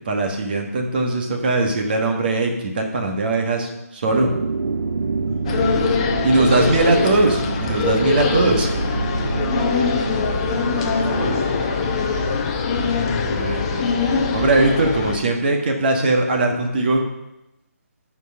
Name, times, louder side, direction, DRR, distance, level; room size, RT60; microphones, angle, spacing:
voice 1, 0.0-4.3 6.2-8.7 10.8-10.9 13.3-13.8 14.3-17.0, right 2 dB, 35° right, 2 dB, 1.5 m, -20 dB
sound 1, 4.1-11.4, right 4 dB, 80° right, 0.7 m, -27 dB
voice 2, 5.2-6.0 6.3-7.3 8.0-8.3 9.3-12.5, right 1 dB, 15° right, -4 dB, 0.9 m, -34 dB
sound 2, 5.4-15.2, left 4 dB, 25° left, 0.7 m, -22 dB
12.0 x 4.7 x 5.7 m, 0.92 s
hypercardioid pair, 165°, 9 cm